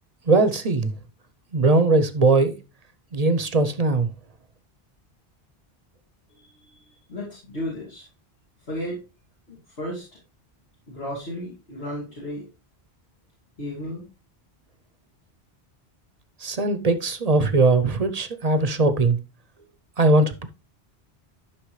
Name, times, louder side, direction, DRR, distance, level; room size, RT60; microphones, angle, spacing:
voice 1, 0.3-0.9 1.5-2.6 3.1-4.1 16.4-19.2 20.0-20.5, right 3 dB, 40° right, 0.8 m, -20 dB
voice 2, 6.3-8.1 8.7-9.0 9.5-10.0 10.9-12.5 13.6-14.1, equal, 70° left, 2.8 m, -34 dB
11.5 x 6.0 x 3.2 m
omnidirectional pair, 1.1 m